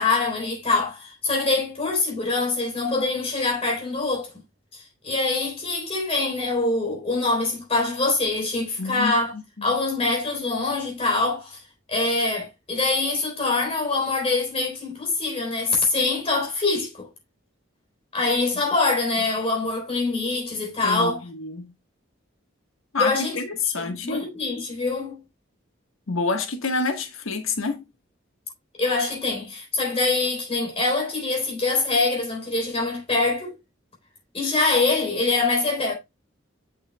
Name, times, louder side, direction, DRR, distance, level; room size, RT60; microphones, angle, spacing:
voice 1, 0.0-4.3 4.7-9.3 9.6-11.6 11.9-17.1 18.1-21.2 23.0-23.4 23.7-25.2 28.8-33.6 34.3-35.9, left 3 dB, 30° left, 3.7 m, -24 dB
voice 2, 8.8-9.8 20.8-21.7 22.9-24.3 26.1-27.8, left 4 dB, 90° left, 1.4 m, -28 dB
8.2 x 6.6 x 2.2 m
head